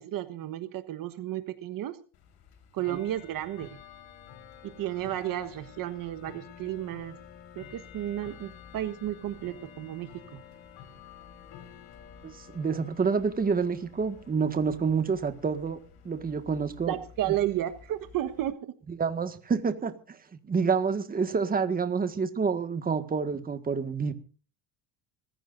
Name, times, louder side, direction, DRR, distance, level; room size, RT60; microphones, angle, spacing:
voice 1, 0.0-2.0 2.7-3.8 4.6-7.2 7.5-10.4 16.9-18.7, right 13 dB, 50° right, 10 dB, 1.4 m, -33 dB
Bell / Tick-tock, 2.1-18.5, left 8 dB, 60° left, 4.1 m, -50 dB
voice 2, 12.2-15.8 16.1-17.0 17.3-17.4 18.9-20.2 20.5-24.1, right 5 dB, 20° right, 9 dB, 1.8 m, -28 dB
25.0 x 15.5 x 2.6 m, 0.39 s
cardioid pair, 130°, 43 cm